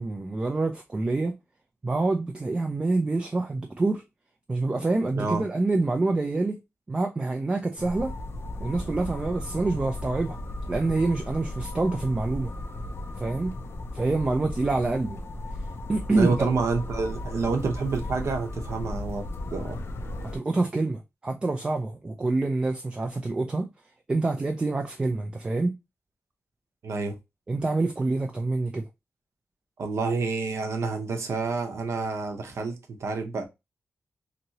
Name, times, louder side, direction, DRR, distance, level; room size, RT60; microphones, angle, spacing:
voice 1, 0.0-1.4 1.8-4.0 4.5-6.6 6.9-8.1 8.6-10.4 10.7-12.5 13.2-13.5 13.9-15.2 15.9-16.5 20.2-23.7 24.1-25.8 27.5-28.9, right 3 dB, 20° right, 0.3 m, -26 dB
sound 1, 7.8-20.4, left 1 dB, 55° left, 0.5 m, -35 dB
voice 2, 16.1-19.8 26.8-27.2 29.8-33.4, right 4 dB, 70° right, 0.7 m, -28 dB
2.9 x 2.7 x 2.8 m
wide cardioid pair, 165°, 5 cm